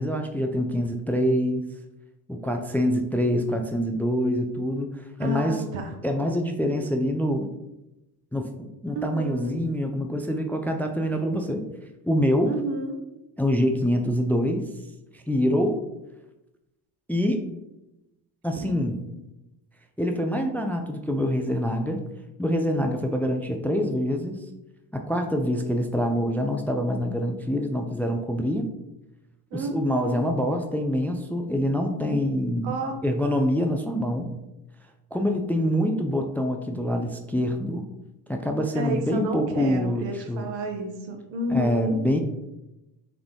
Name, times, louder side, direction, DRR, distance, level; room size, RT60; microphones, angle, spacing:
voice 1, 0.0-1.7 2.3-5.6 6.0-7.5 8.3-11.6 12.0-12.5 13.4-14.6 15.1-15.8 17.1-17.4 18.4-18.9 20.0-22.0 22.4-24.4 24.9-28.7 29.5-32.8 33.0-34.3 35.1-37.9 38.3-40.5 41.5-42.2, equal, 5° left, 5 dB, 0.4 m, -25 dB
voice 2, 5.2-5.9 8.9-9.6 12.5-13.0 18.6-19.0 29.5-30.3 32.6-32.9 38.7-42.0, right 1 dB, 70° right, 4 dB, 1.0 m, -31 dB
3.6 x 3.4 x 3.6 m, 0.94 s
hypercardioid pair, 60°, 46 cm